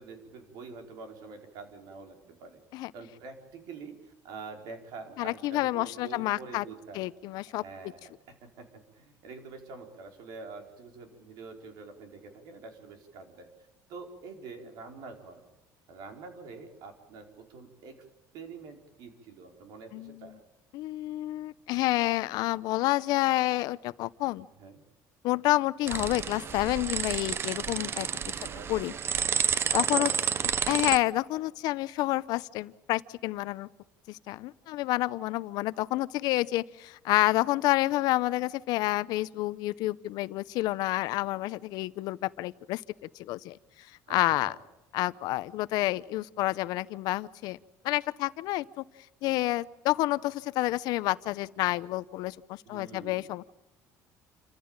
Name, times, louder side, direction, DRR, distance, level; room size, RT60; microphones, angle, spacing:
voice 1, 0.0-2.6 2.9-7.0 7.5-8.1 8.6-13.5 13.9-15.4 15.9-18.0 18.3-20.4 24.6-24.8 28.4-29.0 29.8-30.2 44.1-44.2 44.4-44.6 52.7-53.3, right 4 dB, 75° right, 4 dB, 4.7 m, -46 dB
voice 2, 5.2-6.6 6.9-7.6 19.9-20.3 20.7-24.5 25.2-28.1 28.7-28.9 29.7-30.1 30.7-33.7 34.1-42.8 43.2-43.6 44.1-44.5 44.9-47.6 47.8-48.8 49.2-53.4, left 17 dB, 75° left, 16 dB, 0.7 m, -29 dB
sound 1, 25.9-31.0, right 8 dB, 35° right, 0.7 m, -30 dB
28.0 x 14.5 x 9.0 m, 1.0 s
cardioid pair, 135°, 7 cm